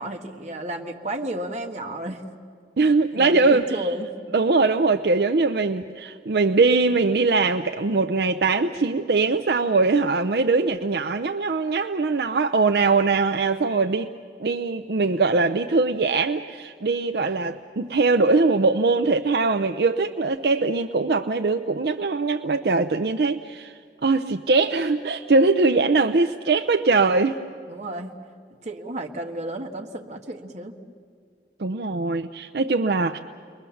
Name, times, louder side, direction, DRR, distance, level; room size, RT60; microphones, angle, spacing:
voice 1, 0.0-2.2 2.8-4.1 27.7-28.2 28.6-30.8, right 1 dB, 40° right, 2 dB, 1.5 m, -32 dB
voice 2, 2.8-3.8 4.3-14.1 14.4-27.4 31.6-33.2, right 3 dB, 65° right, 6 dB, 0.5 m, -21 dB
29.5 x 22.0 x 7.1 m, 2.2 s
head